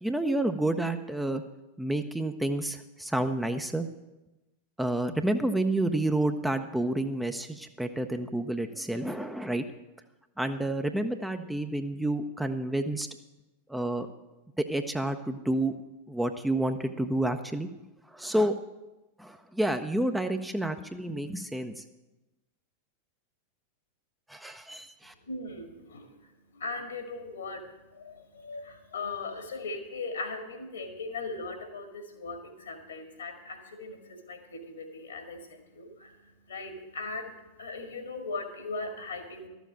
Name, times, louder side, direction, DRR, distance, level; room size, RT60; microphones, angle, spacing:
voice 1, 0.0-1.4 1.8-3.9 4.8-9.6 10.4-13.1 13.7-14.1 14.6-15.8 16.1-17.7 18.1-18.5 19.2-21.8 24.3-25.1, right 1 dB, 5° right, 7 dB, 0.6 m, -29 dB
voice 2, 25.2-39.5, left 3 dB, 70° left, 5 dB, 2.0 m, -39 dB
12.5 x 7.2 x 7.4 m, 1.0 s
figure-of-eight pair, 90°, 0 cm